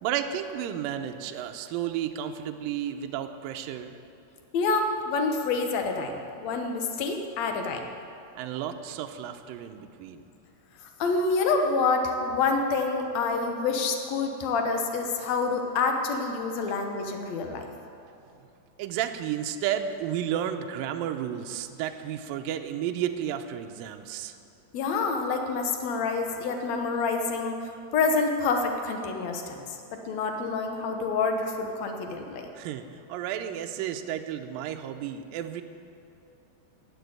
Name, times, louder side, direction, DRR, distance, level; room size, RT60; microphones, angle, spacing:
voice 1, 0.0-4.0 8.4-10.3 18.8-24.4 32.5-32.8 33.1-35.6, right 10 dB, 80° right, 6 dB, 2.2 m, -32 dB
voice 2, 4.5-7.8 11.0-17.7 24.7-27.6 27.9-29.6 29.9-32.5, left 4 dB, 70° left, 4 dB, 1.6 m, -27 dB
15.0 x 7.1 x 9.3 m, 2.6 s
omnidirectional pair, 4.5 m